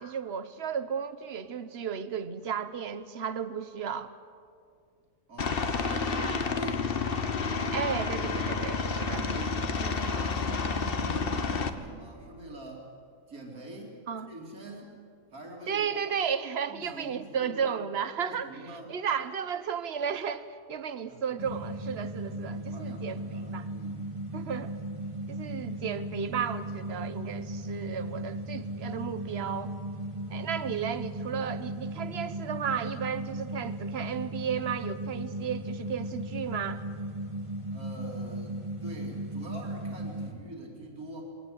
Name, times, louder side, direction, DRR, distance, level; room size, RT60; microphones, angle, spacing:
voice 1, 0.0-4.1 7.7-9.2 14.1-14.3 15.7-18.6 18.9-23.7 24.3-24.8 25.3-29.7 30.3-36.8, right 7 dB, 50° right, 1.0 m, -34 dB
voice 2, 5.3-7.4 8.4-8.7 9.1-12.9 13.3-14.9 15.3-15.9 16.8-17.7 18.3-19.0 21.1-21.3 22.2-24.0 37.7-41.3, right 1 dB, 75° right, 3.6 m, -44 dB
Aircraft, 5.4-11.7, left 4 dB, 40° left, 1.2 m, -30 dB
sound 1, 21.4-40.3, right 1 dB, 20° right, 2.2 m, -36 dB
22.5 x 18.5 x 7.9 m
omnidirectional pair, 1.6 m